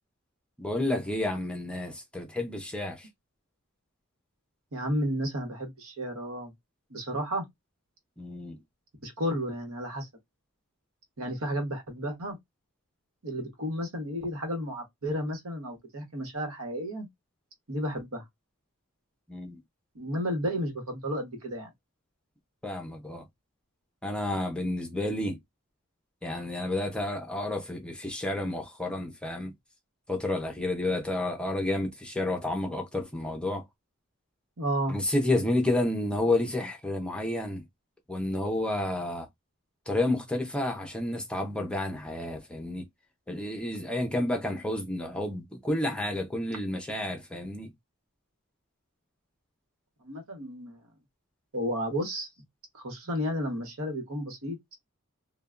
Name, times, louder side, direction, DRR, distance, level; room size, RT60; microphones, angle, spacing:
voice 1, 0.6-3.1 8.2-8.6 19.3-19.6 22.6-23.2 24.0-25.4 26.2-29.5 30.1-33.6 34.9-37.6 38.1-39.3 39.9-42.8 43.3-47.7, left 1 dB, 5° left, 0.6 m, -30 dB
voice 2, 4.7-6.5 6.9-7.4 9.0-10.1 11.2-12.4 13.2-17.1 17.7-18.2 19.9-21.7 34.6-35.0 50.0-50.8 51.5-52.3 52.7-54.6, equal, 80° right, 1.0 m, -32 dB
3.3 x 2.2 x 2.4 m
head